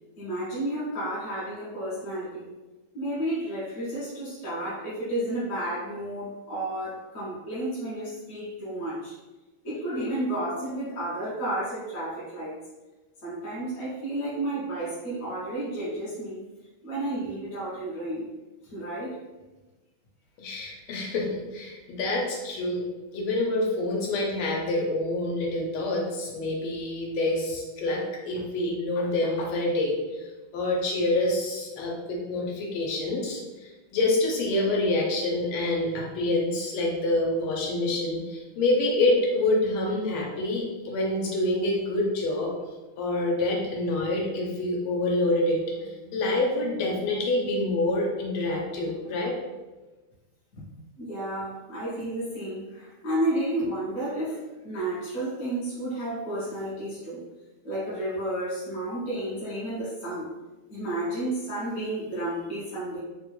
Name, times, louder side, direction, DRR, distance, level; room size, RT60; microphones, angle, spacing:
voice 1, 0.2-2.5 2.9-9.2 9.6-12.6 13.2-16.4 16.8-18.3 18.6-19.2 50.5-50.6 51.0-57.2 57.6-60.3 60.7-63.0, right 1 dB, 55° left, -9 dB, 1.0 m, -32 dB
voice 2, 20.4-22.9 23.1-29.9 30.5-42.5 43.0-49.4, left 2 dB, 90° left, -1 dB, 1.5 m, -27 dB
3.7 x 2.2 x 3.0 m, 1.1 s
omnidirectional pair, 2.2 m